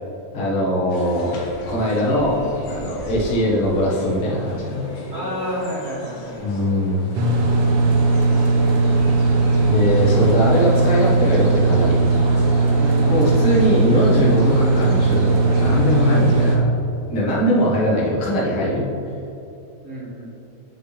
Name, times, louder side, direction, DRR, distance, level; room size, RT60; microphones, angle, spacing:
voice 1, 0.3-1.4 1.7-2.4 2.7-4.9 6.4-7.1 9.7-12.0 13.1-16.6 17.1-18.9, left 1 dB, 45° left, -6 dB, 2.1 m, -21 dB
sound 1, 0.9-16.6, left 1 dB, 75° left, 2.6 m, -36 dB
voice 2, 5.1-6.5 12.7-13.3 19.8-20.3, right 1 dB, 40° right, -9 dB, 1.0 m, -30 dB
sound 2, 7.1-16.6, right 3 dB, 80° right, 1.2 m, -18 dB
9.6 x 5.8 x 3.3 m, 2.8 s
omnidirectional pair, 3.7 m